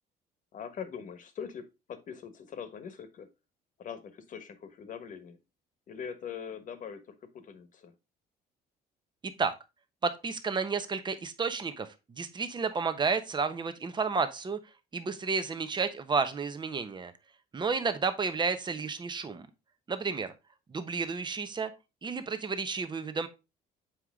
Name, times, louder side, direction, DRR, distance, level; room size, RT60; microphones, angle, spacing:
voice 1, 0.5-3.3 3.8-5.4 5.9-7.9, left 7 dB, 50° left, 10 dB, 1.4 m, -42 dB
voice 2, 9.2-9.5 10.0-14.6 14.9-17.1 17.5-19.5 19.9-20.3 20.7-21.7 22.0-23.3, right 5 dB, 25° right, 9 dB, 1.1 m, -31 dB
7.6 x 4.9 x 3.6 m, 0.26 s
cardioid pair, 110°, 17 cm